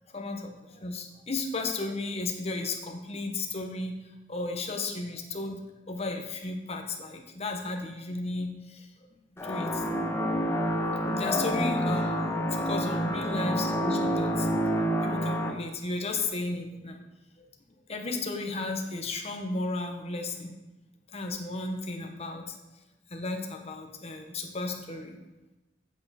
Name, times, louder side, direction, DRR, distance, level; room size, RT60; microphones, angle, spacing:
voice 1, 0.1-4.0 4.3-5.6 5.9-8.9 9.4-9.8 10.2-10.5 11.1-14.5 15.0-17.0 17.4-17.5 17.9-20.5 21.1-22.6 23.1-25.2, left 3 dB, 35° left, 3 dB, 1.2 m, -34 dB
sound 1, 9.4-15.5, equal, 15° left, 1.3 m, -28 dB
8.4 x 7.7 x 4.3 m, 1.0 s
head